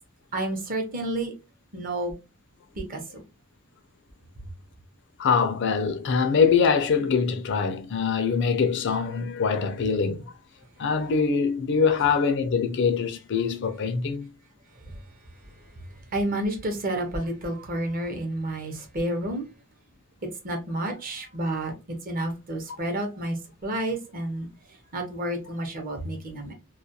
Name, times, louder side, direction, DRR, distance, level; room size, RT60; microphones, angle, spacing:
voice 1, 0.3-1.3 1.7-2.1 2.8-3.2 14.9-15.0 16.1-19.5 20.4-21.7 22.0-23.4 23.6-24.5 24.9-26.5, right 1 dB, 40° right, 0.7 m, -30 dB
voice 2, 5.2-10.2 10.8-14.3, left 5 dB, 55° left, 0.4 m, -23 dB
2.3 x 2.2 x 2.7 m
head